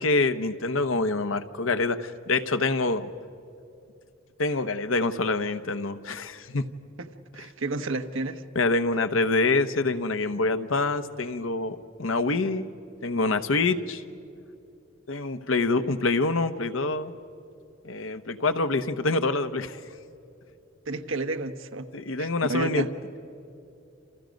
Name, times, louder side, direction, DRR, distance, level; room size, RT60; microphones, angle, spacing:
voice 1, 0.0-3.1 4.4-6.7 8.5-12.6 13.0-14.0 15.1-17.1 17.8-19.8 21.9-22.9, left 3 dB, 85° left, 9 dB, 1.0 m, -26 dB
voice 2, 7.3-8.4 20.9-21.9 22.2-22.9, right 3 dB, 75° right, 7 dB, 1.1 m, -31 dB
29.0 x 28.5 x 5.2 m, 2.6 s
head